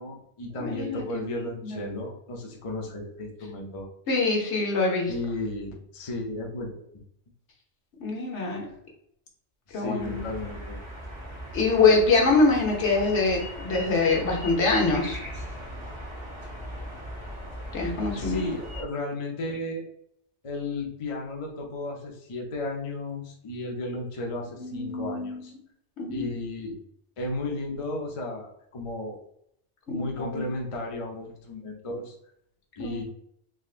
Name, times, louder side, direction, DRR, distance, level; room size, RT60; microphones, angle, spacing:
voice 1, 0.0-3.9 5.1-6.8 8.7-8.8 9.7-10.8 18.1-19.8 20.4-25.5 26.1-26.8 27.2-29.2 29.9-32.2 32.8-33.0, left 2 dB, 35° left, 0 dB, 0.6 m, -34 dB
voice 2, 0.6-1.2 1.6-2.0 4.1-5.1 8.0-8.7 9.7-10.2 11.5-15.2 17.7-18.5 24.6-25.4 26.0-26.2 29.9-30.5 32.8-33.0, left 3 dB, 70° left, -1 dB, 1.2 m, -24 dB
sound 1, 10.0-18.8, equal, 25° right, 0.9 m, -38 dB
3.6 x 3.2 x 2.4 m, 0.71 s
omnidirectional pair, 1.2 m